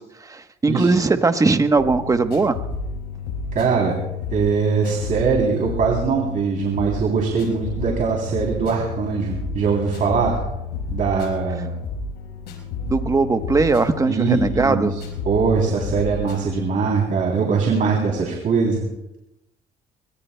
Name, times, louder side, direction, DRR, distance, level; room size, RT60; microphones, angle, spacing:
voice 1, 0.0-2.6 12.9-14.9, right 3 dB, 20° right, 8 dB, 1.1 m, -19 dB
sound 1, 1.8-17.0, left 4 dB, 75° left, 5.7 m, -31 dB
voice 2, 3.5-4.0 4.3-10.4 10.9-11.7 14.1-15.0 15.2-18.9, right 5 dB, 50° right, -1 dB, 3.3 m, -21 dB
23.5 x 21.5 x 2.3 m, 0.90 s
cardioid pair, 110°, 17 cm